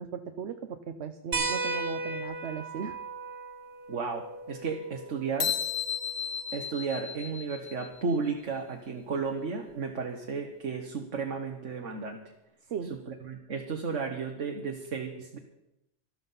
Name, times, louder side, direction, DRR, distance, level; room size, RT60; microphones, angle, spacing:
voice 1, 0.0-3.0 12.7-12.9, right 6 dB, 65° right, 8 dB, 1.1 m, -37 dB
sound 1, 1.3-6.4 7.9-8.0 9.7-9.8, right 3 dB, 50° right, 1.3 m, -36 dB
voice 2, 3.9-5.5 6.5-12.2 12.9-15.4, right 5 dB, 85° right, 3 dB, 1.7 m, -33 dB
sound 2, 5.4-8.0, left 8 dB, 60° left, 1.3 m, -33 dB
13.5 x 13.0 x 5.7 m, 0.89 s
omnidirectional pair, 1.2 m